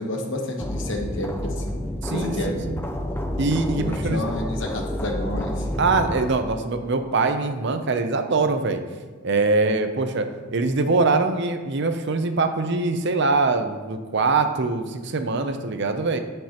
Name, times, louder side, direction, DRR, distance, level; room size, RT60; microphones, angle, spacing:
voice 1, 0.0-1.8 2.1-2.5 3.8-5.7, left 1 dB, 55° left, 2 dB, 1.2 m, -30 dB
sound 1, 0.6-6.3, left 1 dB, 10° left, 0.5 m, -29 dB
voice 2, 2.0-2.8 3.4-4.2 5.8-8.8 9.2-10.3 10.5-16.2, right 3 dB, 55° right, 7 dB, 0.6 m, -23 dB
13.5 x 5.4 x 2.9 m, 1.4 s
head